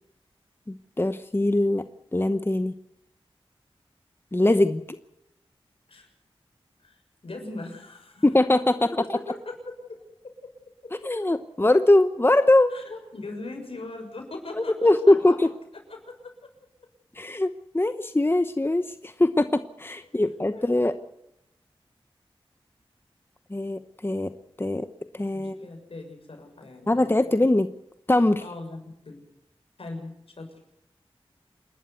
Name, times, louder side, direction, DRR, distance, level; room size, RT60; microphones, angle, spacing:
voice 1, 0.7-1.8 2.1-2.7 4.3-5.0 8.2-8.8 11.0-12.7 14.6-15.5 17.2-20.9 23.5-24.3 24.6-24.9 25.1-25.7 26.9-27.7 28.1-28.4, left 1 dB, 25° left, 10 dB, 1.0 m, -22 dB
voice 2, 6.8-8.3 8.8-10.5 10.8-11.1 12.7-15.4 15.9-16.3 20.5-20.8 25.3-27.4 28.4-29.2 29.8-30.5, left 2 dB, 70° left, 2 dB, 6.5 m, -40 dB
28.0 x 12.0 x 8.2 m, 0.82 s
wide cardioid pair, 55°, 10 cm